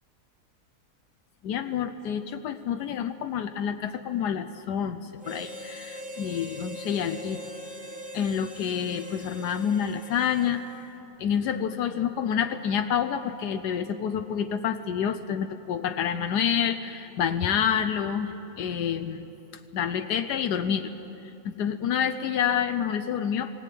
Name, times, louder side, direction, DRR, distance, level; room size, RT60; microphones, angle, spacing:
voice 1, 1.4-7.4 8.1-10.9 11.2-19.3 19.7-20.9 21.2-23.5, left 8 dB, 85° left, 9 dB, 1.3 m, -28 dB
Harmonica, 5.2-10.9, equal, 5° right, 1.5 m, -42 dB
19.5 x 17.5 x 9.9 m, 3.0 s
omnidirectional pair, 1.7 m